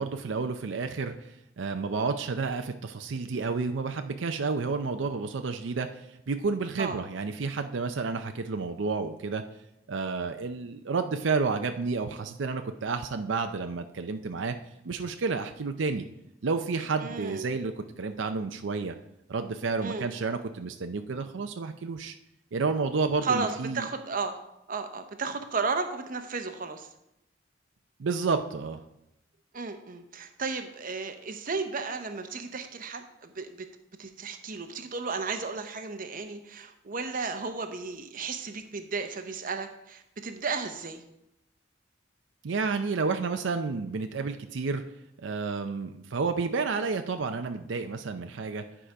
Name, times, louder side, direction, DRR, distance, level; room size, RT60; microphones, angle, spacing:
voice 1, 0.0-9.4 9.9-14.6 14.8-16.0 16.4-18.9 19.3-22.2 22.5-23.9 28.0-28.8 42.4-44.8 45.2-48.6, right 4 dB, 80° right, 7 dB, 0.5 m, -30 dB
voice 2, 17.0-17.5 19.8-20.1 23.2-24.4 24.7-26.9 29.5-33.7 34.0-41.0, right 4 dB, 45° right, 7 dB, 0.8 m, -34 dB
10.5 x 5.0 x 4.9 m, 0.84 s
head